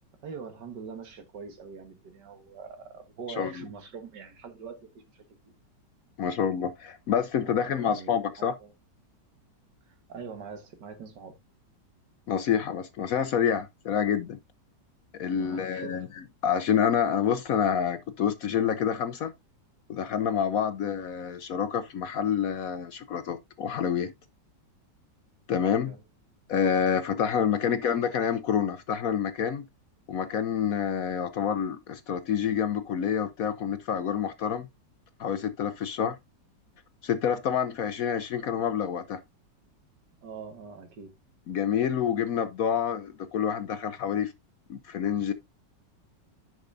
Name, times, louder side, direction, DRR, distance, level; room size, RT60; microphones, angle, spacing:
voice 1, 0.2-5.5 7.4-8.7 9.9-11.4 15.3-16.0 25.8-26.0 27.6-27.8 40.2-41.1, right 5 dB, 70° right, 2.1 m, -43 dB
voice 2, 6.2-8.5 12.3-14.4 15.1-16.1 16.4-19.3 19.9-24.1 25.5-25.9 26.5-29.7 30.1-34.7 35.2-36.2 37.0-39.2 41.5-44.3 44.7-45.3, left 8 dB, 65° left, 0.9 m, -27 dB
10.0 x 6.1 x 2.6 m
omnidirectional pair, 1.9 m